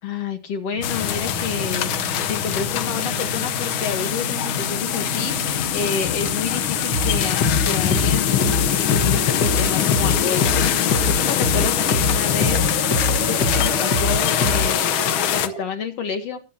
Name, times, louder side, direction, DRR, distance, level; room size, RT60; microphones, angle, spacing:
voice 1, 0.0-12.6 13.2-16.4, left 5 dB, 60° left, 6 dB, 2.1 m, -29 dB
sound 1, 0.7-15.6, right 4 dB, 50° right, 2.7 m, -33 dB
sound 2, 0.8-15.5, left 11 dB, 90° left, 1.1 m, -23 dB
sound 3, 6.9-14.7, left 2 dB, 45° left, 1.6 m, -24 dB
22.0 x 9.3 x 2.8 m, 0.30 s
omnidirectional pair, 3.4 m